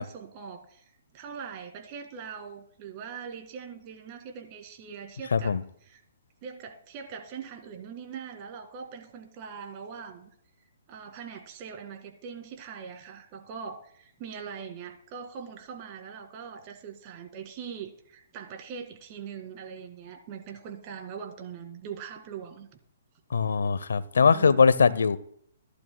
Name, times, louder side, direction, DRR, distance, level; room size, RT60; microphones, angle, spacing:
voice 1, 0.0-5.6 5.8-6.0 6.4-10.3 10.9-22.7 24.2-24.6, right 7 dB, 35° right, 2.0 m, -42 dB
voice 2, 23.3-25.2, left 5 dB, 80° left, 0.6 m, -21 dB
15.0 x 11.5 x 2.2 m
hypercardioid pair, 135°, 0 cm